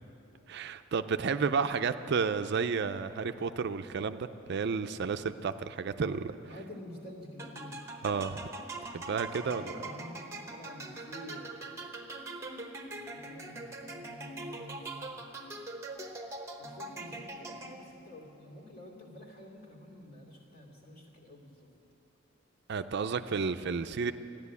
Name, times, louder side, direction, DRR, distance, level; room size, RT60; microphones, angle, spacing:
voice 1, 0.5-6.3 8.0-8.4 8.9-9.6 22.7-24.1, right 5 dB, 55° right, 10 dB, 0.4 m, -31 dB
voice 2, 6.5-7.8 9.4-11.6 12.8-15.2 16.6-21.7, left 1 dB, 50° left, 0 dB, 2.6 m, -48 dB
sound 1, 7.4-18.1, right 2 dB, 15° right, 1.0 m, -43 dB
14.0 x 10.5 x 8.3 m, 2.9 s
head